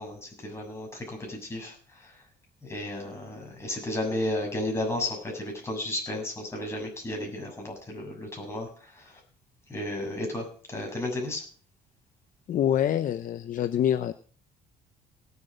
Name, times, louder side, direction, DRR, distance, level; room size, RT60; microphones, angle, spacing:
voice 1, 0.0-2.1 2.6-9.2 9.7-11.4, left 1 dB, 15° left, 0 dB, 7.0 m, -33 dB
voice 2, 12.5-14.1, left 10 dB, 50° left, 11 dB, 0.8 m, -25 dB
18.0 x 8.2 x 5.1 m, 0.42 s
cardioid pair, 110°, 17 cm